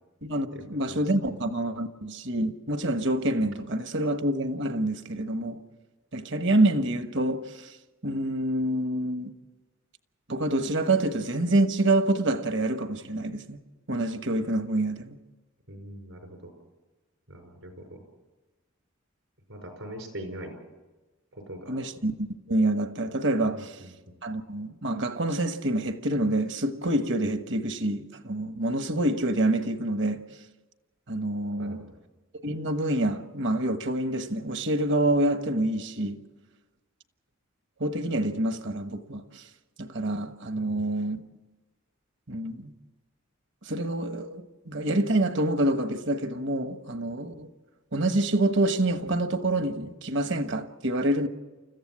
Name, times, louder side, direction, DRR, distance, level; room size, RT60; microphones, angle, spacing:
voice 1, 0.2-5.6 6.1-7.7 8.0-9.3 10.3-13.6 13.9-15.2 21.7-23.8 24.2-30.2 31.1-31.8 32.4-36.2 37.8-39.4 39.8-41.2 42.3-42.7 43.7-47.5 47.9-51.3, right 1 dB, 60° right, 1.3 m, -27 dB
voice 2, 15.7-16.4 17.3-18.0 19.5-20.6 21.3-21.7 23.5-23.6 31.6-31.9 40.6-40.8, right 1 dB, 75° right, 5.2 m, -41 dB
29.5 x 14.5 x 7.5 m
head